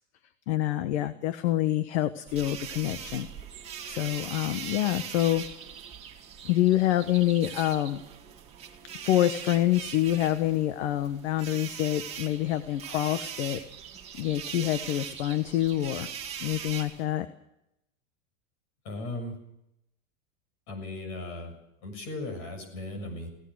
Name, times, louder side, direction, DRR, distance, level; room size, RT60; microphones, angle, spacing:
voice 1, 0.5-3.3 3.8-5.4 6.4-8.0 9.0-13.6 14.2-16.1 16.4-17.3, left 13 dB, 50° left, 11 dB, 1.3 m, -26 dB
sound 1, 2.3-17.0, right 8 dB, 15° right, 2.2 m, -41 dB
voice 2, 18.8-19.4 20.7-21.5 21.8-23.3, left 2 dB, 35° left, 7 dB, 6.9 m, -37 dB
24.5 x 17.5 x 6.4 m, 0.82 s
supercardioid pair, 170°, 41 cm